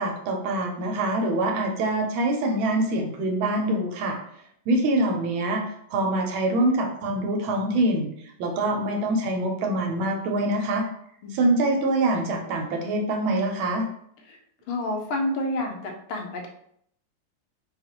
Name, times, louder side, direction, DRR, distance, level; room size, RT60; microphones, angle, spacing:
voice 1, 0.0-4.2 4.7-5.6 5.9-8.1 8.4-10.9 11.3-13.9, right 1 dB, 80° right, 2 dB, 1.4 m, -24 dB
voice 2, 11.2-11.7 14.3-14.4 14.7-16.5, left 1 dB, 80° left, 2 dB, 1.4 m, -29 dB
4.1 x 2.4 x 2.9 m, 0.68 s
omnidirectional pair, 2.3 m